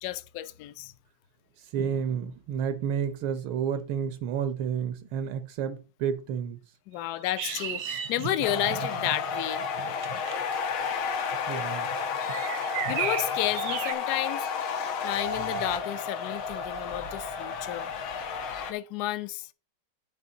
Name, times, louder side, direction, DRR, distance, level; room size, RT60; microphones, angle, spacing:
voice 1, 0.0-0.9 6.9-9.6 12.9-14.5 15.0-17.9 18.7-19.5, left 13 dB, 75° left, 0.9 m, -32 dB
voice 2, 1.7-6.6 11.5-11.9, right 7 dB, 85° right, 1.7 m, -30 dB
sound 1, 7.4-13.9, right 10 dB, 70° right, 1.0 m, -36 dB
sound 2, 8.4-18.7, left 5 dB, 90° left, 1.9 m, -32 dB
10.0 x 4.4 x 3.8 m
omnidirectional pair, 2.2 m